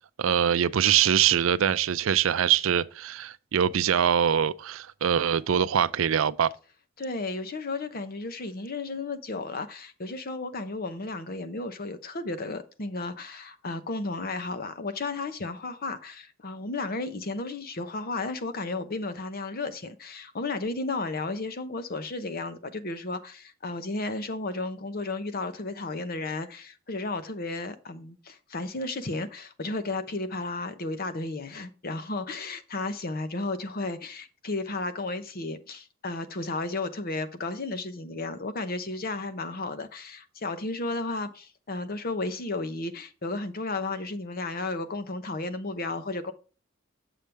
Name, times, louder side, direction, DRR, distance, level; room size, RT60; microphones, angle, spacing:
voice 1, 0.2-6.5, right 9 dB, 75° right, 0.4 m, -23 dB
voice 2, 7.0-46.3, left 3 dB, 45° left, 0.8 m, -33 dB
7.4 x 6.9 x 3.4 m
head